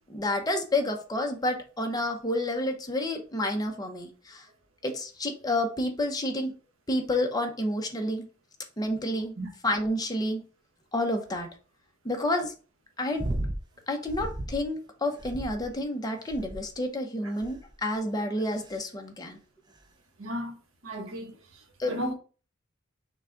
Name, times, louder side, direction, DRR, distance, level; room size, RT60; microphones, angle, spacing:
voice 1, 0.1-4.5 4.8-6.5 6.9-8.2 8.8-9.4 9.6-10.4 10.9-11.5 12.0-12.5 13.0-13.3 13.9-19.4 21.8-22.1, left 1 dB, 20° left, 0.8 m, -29 dB
sound 1, 13.2-13.6 14.1-14.7 15.2-15.8 16.3-16.8 17.4-17.8 18.5-18.8 19.8-19.9, right 1 dB, 20° right, 0.5 m, -34 dB
voice 2, 20.2-20.6 20.8-21.3 21.9-22.1, equal, 85° right, 1.1 m, -33 dB
6.0 x 2.3 x 3.8 m
head